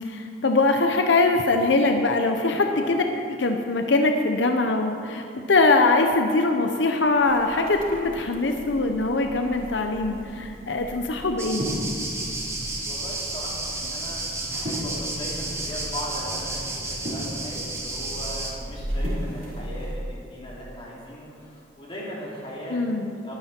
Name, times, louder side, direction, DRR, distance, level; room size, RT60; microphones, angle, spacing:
voice 1, 0.0-11.7 22.7-23.2, left 3 dB, 80° left, 4 dB, 0.8 m, -22 dB
voice 2, 2.5-2.8 12.8-22.8 23.2-23.3, equal, 30° left, -6 dB, 3.6 m, -38 dB
sound 1, 7.2-19.9, equal, 55° right, 3.9 m, -36 dB
sound 2, 11.4-18.5, right 2 dB, 15° right, 1.4 m, -32 dB
20.5 x 9.8 x 4.5 m, 2.5 s
head